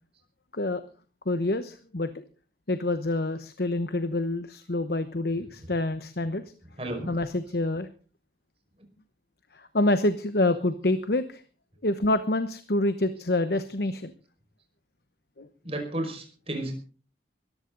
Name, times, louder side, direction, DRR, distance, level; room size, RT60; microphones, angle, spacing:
voice 1, 1.3-2.2 2.7-6.5 7.1-7.9 9.5-11.4 11.8-14.1 15.4-15.5, left 2 dB, 60° left, 11 dB, 1.0 m, -27 dB
voice 2, 6.8-7.1 15.6-16.7, right 1 dB, 35° right, 4 dB, 5.3 m, -32 dB
21.0 x 14.5 x 3.9 m, 0.38 s
head